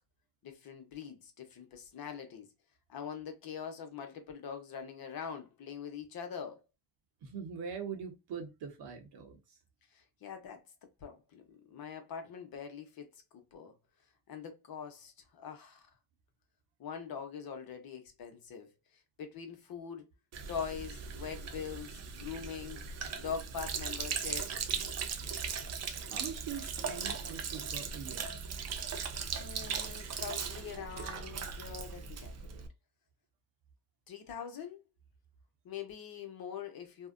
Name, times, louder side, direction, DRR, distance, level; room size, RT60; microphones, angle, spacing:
voice 1, 0.4-2.5 2.9-6.6 9.9-10.7 11.0-13.1 13.3-13.8 14.3-15.9 16.8-18.7 19.2-20.1 20.5-22.9 23.2-24.5 29.4-32.6 34.1-34.8 35.6-37.1, left 7 dB, 45° left, 0.9 m, -43 dB
voice 2, 7.2-9.6 26.1-28.3, right 6 dB, 55° right, 1.0 m, -43 dB
Sink (filling or washing), 20.3-32.7, right 6 dB, 35° right, 0.5 m, -38 dB
2.6 x 2.1 x 2.4 m
supercardioid pair, 70°, 48 cm